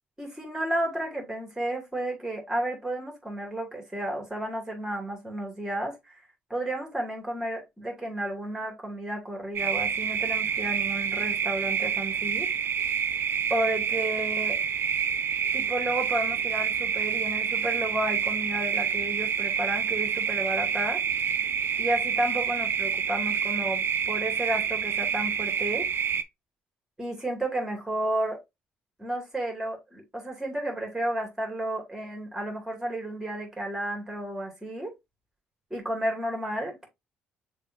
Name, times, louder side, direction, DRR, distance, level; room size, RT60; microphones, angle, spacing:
voice 1, 0.2-6.2 6.5-12.5 13.5-14.6 15.5-21.0 21.8-25.9 27.0-28.4 29.0-34.9 35.7-36.9, right 1 dB, 10° right, 2.6 m, -32 dB
sound 1, 9.5-26.2, right 7 dB, 50° right, 0.5 m, -28 dB
6.6 x 2.9 x 2.7 m
hypercardioid pair, 50°, 5 cm